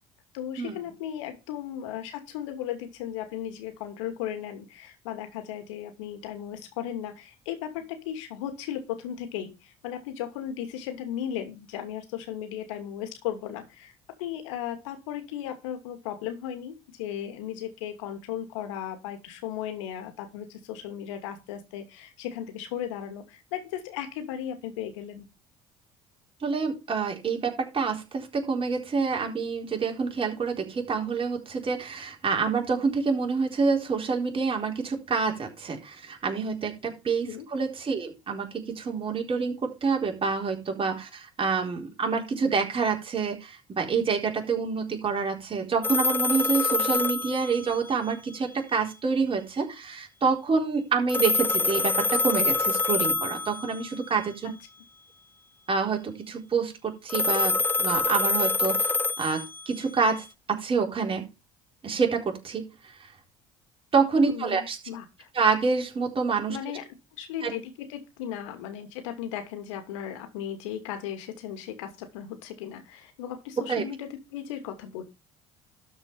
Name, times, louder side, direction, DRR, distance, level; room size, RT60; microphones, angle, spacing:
voice 1, 0.3-13.9 14.2-25.3 37.2-37.5 46.9-47.0 54.4-54.5 64.2-65.3 66.5-66.9 67.2-75.0, left 10 dB, 75° left, 2.6 m, -36 dB
voice 2, 26.4-54.5 55.7-58.8 59.2-61.3 61.8-62.7 63.9-64.8 65.3-66.6 67.4-67.5 73.7-73.8, right 5 dB, 35° right, 4.1 m, -27 dB
sound 1, 45.8-48.1 51.1-54.0 57.1-60.0, left 3 dB, 15° left, 0.7 m, -26 dB
12.5 x 5.4 x 5.7 m
hypercardioid pair, 65°, 16 cm